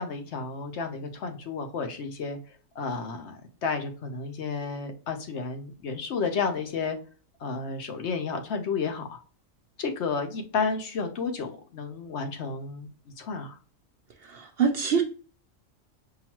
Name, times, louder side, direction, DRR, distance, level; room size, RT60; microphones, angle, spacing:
voice 1, 0.0-2.4 2.8-7.0 7.4-9.2 9.8-12.9 13.2-13.6, left 5 dB, 65° left, 5 dB, 0.9 m, -31 dB
voice 2, 14.2-15.0, right 6 dB, 60° right, 4 dB, 0.7 m, -25 dB
5.7 x 2.6 x 2.9 m, 0.38 s
omnidirectional pair, 1.4 m